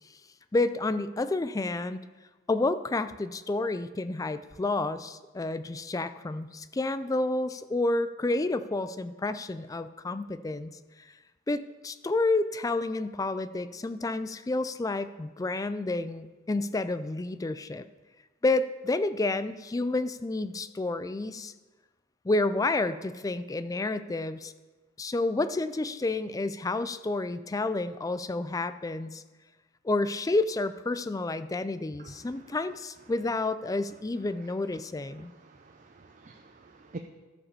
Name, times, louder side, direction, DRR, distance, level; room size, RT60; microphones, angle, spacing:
voice 1, 0.5-2.0 2.5-10.8 11.5-17.8 18.4-21.5 22.2-24.5 25.0-29.2 29.8-35.3, left 2 dB, 15° left, 12 dB, 0.3 m, -30 dB
voice 2, 35.1-37.0, right 2 dB, 40° right, 4 dB, 0.5 m, -47 dB
13.0 x 4.8 x 6.8 m, 1.3 s
head